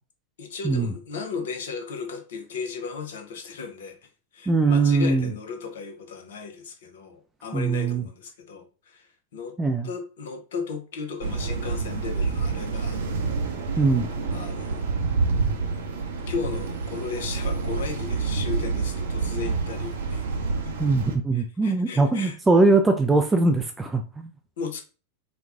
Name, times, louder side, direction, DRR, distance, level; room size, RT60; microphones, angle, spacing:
voice 1, 0.4-4.0 4.3-9.6 9.8-13.0 14.3-14.9 16.3-20.3 20.6-20.8 21.3-22.4 24.6-24.8, left 5 dB, 60° left, 0.7 m, -35 dB
voice 2, 4.5-5.3 7.5-8.0 9.6-9.9 13.8-14.1 20.8-24.3, right 3 dB, 10° right, 0.3 m, -21 dB
sound 1, 11.2-21.2, right 4 dB, 60° right, 0.7 m, -28 dB
4.3 x 2.3 x 2.4 m
figure-of-eight pair, 90°, 0 cm